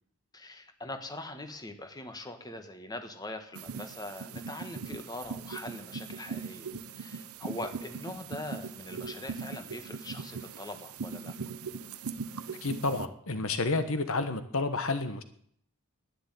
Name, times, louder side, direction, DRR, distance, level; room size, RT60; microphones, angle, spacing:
voice 1, 0.3-6.7 7.0-11.3, left 2 dB, 20° left, 7 dB, 1.4 m, -42 dB
sound 1, 3.6-13.1, right 5 dB, 80° right, 0.8 m, -40 dB
voice 2, 12.6-15.2, left 3 dB, 65° left, 10 dB, 1.3 m, -30 dB
11.5 x 9.8 x 9.3 m, 0.65 s
head